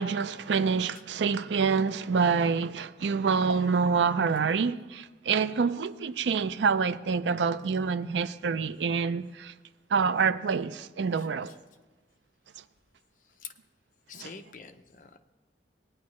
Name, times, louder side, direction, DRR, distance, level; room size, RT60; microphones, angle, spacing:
voice 1, 0.0-9.5 9.9-11.5 14.2-14.3, right 5 dB, 80° right, 0.4 m, -27 dB
voice 2, 11.2-11.6 13.4-13.5 14.1-15.2, left 6 dB, 45° left, 0.7 m, -46 dB
18.5 x 9.5 x 3.2 m
head